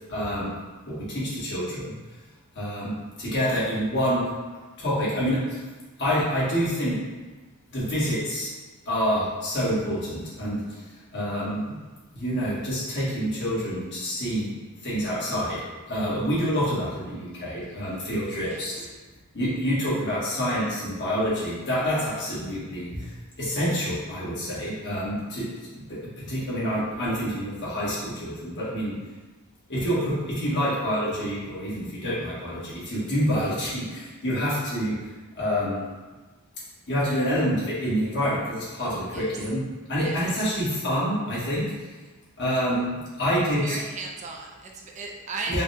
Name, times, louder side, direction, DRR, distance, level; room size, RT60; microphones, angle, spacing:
voice 1, 0.1-0.5 0.8-1.9 2.5-4.3 4.8-5.6 6.0-7.0 7.7-8.5 8.8-10.6 11.1-11.7 12.1-14.5 14.8-15.6 15.9-18.9 19.3-23.1 23.4-25.5 25.9-28.9 29.7-35.0 35.3-35.9 36.9-39.6 39.9-41.6 42.4-42.9 43.2-43.8 45.5-45.6, equal, 55° left, -8 dB, 1.5 m, -27 dB
voice 2, 43.6-45.6, right 3 dB, 35° right, 1 dB, 0.4 m, -36 dB
5.1 x 2.2 x 3.3 m, 1.3 s
head